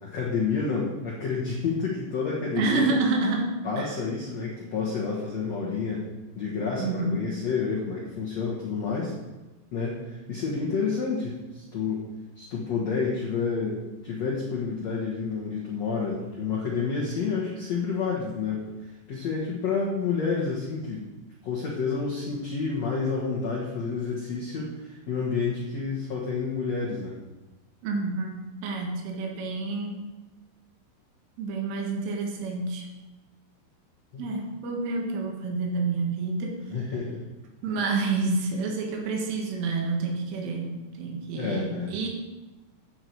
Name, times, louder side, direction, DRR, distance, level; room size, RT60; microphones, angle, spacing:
voice 1, 0.0-2.9 3.6-6.0 6.3-9.1 9.7-12.1 12.4-13.8 14.0-18.6 19.1-21.1 21.4-27.2 34.1-34.3 36.7-37.2 41.3-41.9, left 5 dB, 75° left, -4 dB, 1.5 m, -29 dB
voice 2, 2.3-3.5 3.8-3.9 6.6-7.3 27.8-30.1 31.4-32.9 34.2-36.6 37.6-42.1, right 3 dB, 85° right, 1 dB, 4.1 m, -29 dB
12.0 x 8.9 x 4.7 m, 1.1 s
omnidirectional pair, 5.5 m